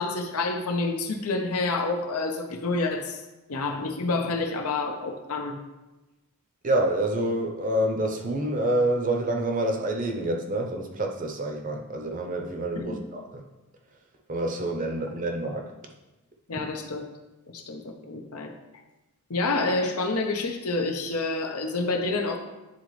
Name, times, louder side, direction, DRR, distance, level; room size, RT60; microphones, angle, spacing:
voice 1, 0.0-3.2 3.5-5.5 12.7-13.1 16.5-17.1 17.5-18.5 19.3-22.4, left 3 dB, 85° left, 3 dB, 0.8 m, -28 dB
voice 2, 6.6-13.4 14.3-15.7, right 1 dB, 35° right, 2 dB, 0.7 m, -27 dB
9.7 x 3.9 x 3.2 m, 1.1 s
head